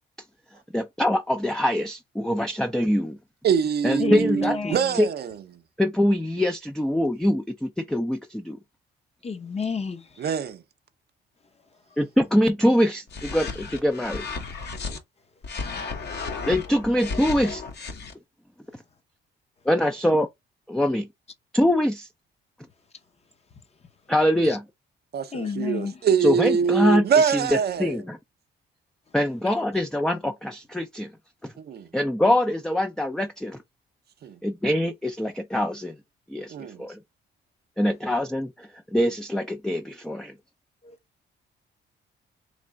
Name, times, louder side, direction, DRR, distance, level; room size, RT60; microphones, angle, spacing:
voice 1, 0.7-3.2 3.8-5.1 5.8-8.6 12.0-14.2 16.5-17.6 19.7-20.3 20.7-21.1 21.5-22.1 24.1-24.6 26.2-28.2 29.1-31.1 31.4-31.5 31.9-33.6 34.4-36.0 36.3-36.5 36.8-37.0 37.8-40.3, left 1 dB, 5° left, 0.4 m, -24 dB
voice 2, 3.4-5.4 10.2-10.6 25.1-28.0 31.6-31.9 34.2-34.4 36.5-36.9, right 7 dB, 55° right, 0.6 m, -24 dB
voice 3, 4.0-5.0 9.2-10.3 24.4-24.6 25.3-26.0 40.8-41.0, left 5 dB, 30° left, 0.7 m, -31 dB
sound 1, 13.1-15.0 15.4-18.1, left 4 dB, 55° left, 1.0 m, -34 dB
3.3 x 3.0 x 3.7 m
cardioid pair, 90°, 20 cm